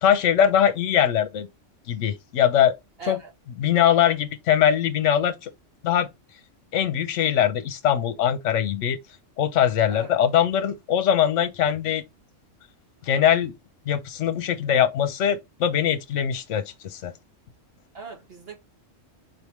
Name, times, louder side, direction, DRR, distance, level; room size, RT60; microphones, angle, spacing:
voice 1, 0.0-1.5 1.9-2.8 3.1-3.2 3.6-5.5 5.8-6.1 6.7-9.0 9.4-12.0 13.0-13.5 13.9-17.1, left 9 dB, 70° left, 1.0 m, -22 dB
voice 2, 3.0-3.3 9.9-10.2 17.9-18.6, right 5 dB, 50° right, 1.4 m, -40 dB
4.3 x 3.4 x 3.0 m
omnidirectional pair, 1.3 m